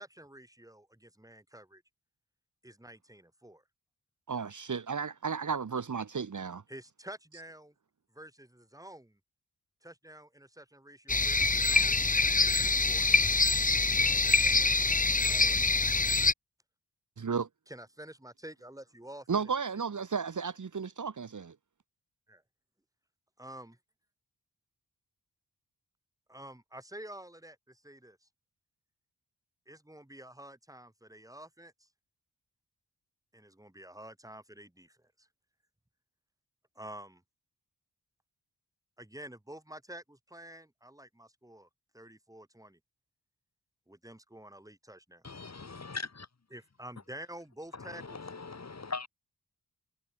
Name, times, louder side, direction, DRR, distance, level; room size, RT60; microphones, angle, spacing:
voice 1, 0.0-1.8 2.6-3.6 6.7-7.7 8.1-9.2 9.8-12.0 12.6-13.4 15.2-15.6 17.7-19.5 22.3-22.4 23.4-23.7 26.3-28.3 29.7-31.9 33.3-35.3 36.7-37.2 39.0-41.7 41.9-42.8 43.9-45.2 46.5-48.3, right 1 dB, 10° right, 6.4 m, -49 dB
voice 2, 4.3-6.6 17.2-17.5 19.3-21.6, right 5 dB, 55° right, 2.1 m, -33 dB
sound 1, 11.1-16.3, left 3 dB, 20° left, 1.0 m, -25 dB
voice 3, 45.2-46.3 47.8-49.1, left 4 dB, 45° left, 6.7 m, -40 dB
wide cardioid pair, 90°, 36 cm